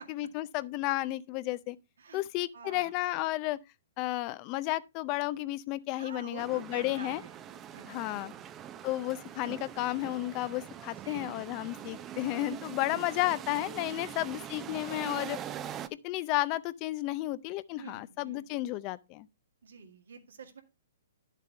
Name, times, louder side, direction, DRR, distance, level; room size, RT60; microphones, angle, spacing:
voice 1, 0.0-1.8 2.1-3.6 4.0-7.2 7.9-8.3 8.8-15.4 16.0-19.3, left 17 dB, 30° left, 0.5 m, -32 dB
voice 2, 2.5-3.0 6.0-8.4 11.0-11.4 12.8-13.1 13.9-14.2 17.8-18.5 19.6-20.6, right 5 dB, 80° right, 2.0 m, -49 dB
sound 1, 6.4-15.9, right 10 dB, 20° right, 0.6 m, -43 dB
10.5 x 7.5 x 3.3 m
hypercardioid pair, 145°, 0 cm